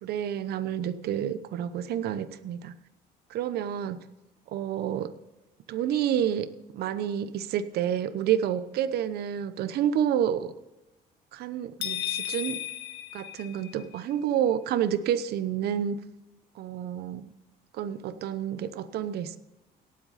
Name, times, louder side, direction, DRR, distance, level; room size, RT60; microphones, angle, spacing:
voice 1, 0.0-2.7 3.3-4.0 4.5-5.1 5.7-6.5 6.7-10.5 11.3-12.6 13.1-16.0 16.6-17.3 17.7-19.4, right 9 dB, 70° right, 12 dB, 0.9 m, -29 dB
sound 1, 11.8-14.0, left 11 dB, 75° left, 1.9 m, -34 dB
18.0 x 7.7 x 4.2 m, 1.0 s
cardioid pair, 110°, 17 cm